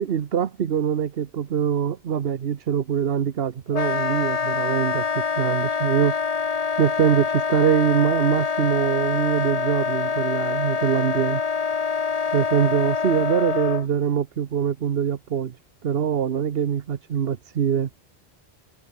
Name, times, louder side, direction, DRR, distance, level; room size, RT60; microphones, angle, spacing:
voice 1, 0.0-5.1 5.4-6.1 6.8-11.4 12.3-15.6 15.8-17.9, right 8 dB, 70° right, 1.1 m, -23 dB
Wind instrument woodwind instrument, 3.7-13.8, left 6 dB, 40° left, 0.9 m, -25 dB
omnidirectional pair, 1.1 m